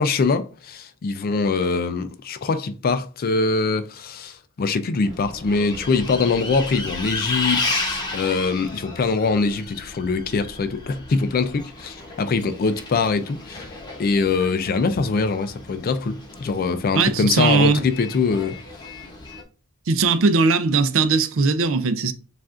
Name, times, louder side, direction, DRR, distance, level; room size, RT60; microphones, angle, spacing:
voice 1, 0.0-13.7 14.0-18.6, left 4 dB, 40° left, 0.4 m, -23 dB
Bus, 5.0-19.4, left 2 dB, 20° left, 0.8 m, -33 dB
voice 2, 16.9-17.8 19.9-22.1, right 4 dB, 60° right, 0.5 m, -19 dB
7.2 x 2.5 x 2.4 m
head